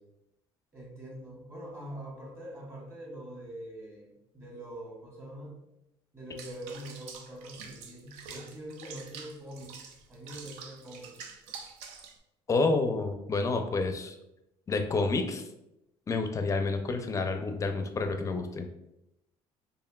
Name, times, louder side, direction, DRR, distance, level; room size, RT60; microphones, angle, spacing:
voice 1, 0.7-5.6 6.1-11.1, right 1 dB, 20° right, -3 dB, 1.5 m, -44 dB
Water / Bathtub (filling or washing), 6.4-12.2, right 5 dB, 85° right, 0.5 m, -46 dB
voice 2, 12.5-14.1 14.7-15.4 16.1-18.7, left 3 dB, 30° left, 6 dB, 0.5 m, -29 dB
4.4 x 3.3 x 2.3 m, 0.86 s
cardioid pair, 105°, 11 cm